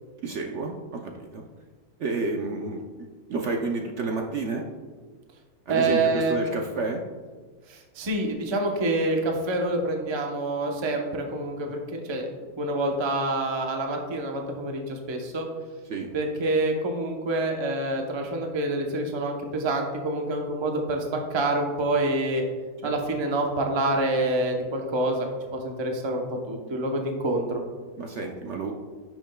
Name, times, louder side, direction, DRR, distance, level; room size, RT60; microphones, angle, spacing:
voice 1, 0.2-1.4 2.0-4.7 5.7-7.0 15.9-16.1 22.8-22.9 28.0-28.7, right 3 dB, 60° right, 2 dB, 0.8 m, -30 dB
voice 2, 5.7-6.4 7.7-12.3 12.6-15.5 16.1-22.4 22.8-27.6, right 2 dB, 30° right, 2 dB, 0.5 m, -27 dB
10.5 x 6.2 x 2.2 m, 1.4 s
omnidirectional pair, 1.6 m